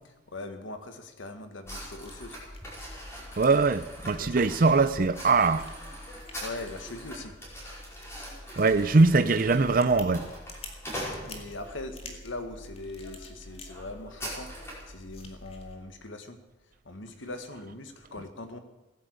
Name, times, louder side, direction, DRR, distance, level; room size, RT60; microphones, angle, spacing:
voice 1, 0.3-2.4 6.4-7.3 11.2-14.5 14.9-16.4 16.9-18.6, left 2 dB, 85° left, 1.7 m, -41 dB
sound 1, 1.6-15.8, left 1 dB, 30° left, 2.1 m, -47 dB
sound 2, 1.6-11.8 12.4-12.6 13.0-13.1 13.4-14.9, equal, 15° left, 5.3 m, -42 dB
voice 2, 3.4-5.7 8.6-10.3, right 3 dB, 45° right, 0.6 m, -22 dB
17.0 x 10.0 x 8.2 m
head